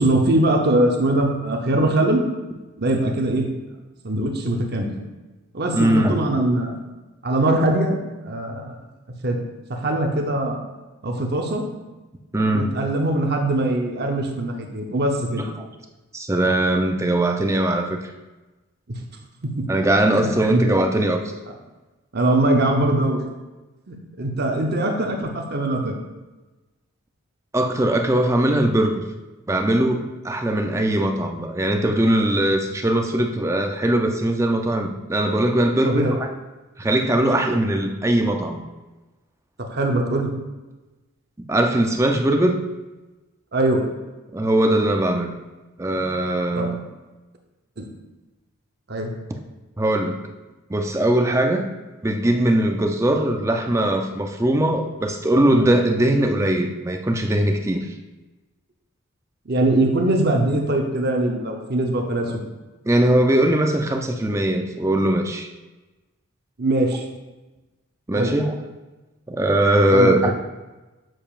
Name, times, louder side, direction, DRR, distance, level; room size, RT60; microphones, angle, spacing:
voice 1, 0.0-2.2 2.8-3.5 4.0-4.9 5.5-6.8 7.2-8.0 8.2-8.8 9.2-9.4 9.7-10.6 11.0-11.6 12.5-15.4 18.9-19.0 19.4-19.6 20.1-20.6 22.1-23.2 23.9-26.0 35.9-36.1 39.7-40.3 43.5-43.9 46.6-46.7 47.8-47.9 48.9-49.1 59.5-62.4 66.6-67.0 68.1-68.3 69.9-70.1, right 1 dB, 50° right, 2 dB, 0.8 m, -21 dB
voice 2, 5.7-6.2 12.3-12.7 15.4-15.5 16.1-18.1 19.7-21.2 27.5-29.0 29.5-36.3 36.8-38.6 41.5-42.6 44.3-45.3 45.8-46.8 49.3-49.4 49.8-50.2 50.7-51.7 52.0-57.9 62.8-65.5 68.1-68.6 69.3-70.3, right 1 dB, 15° right, 4 dB, 0.4 m, -20 dB
7.5 x 6.7 x 2.4 m, 1.1 s
head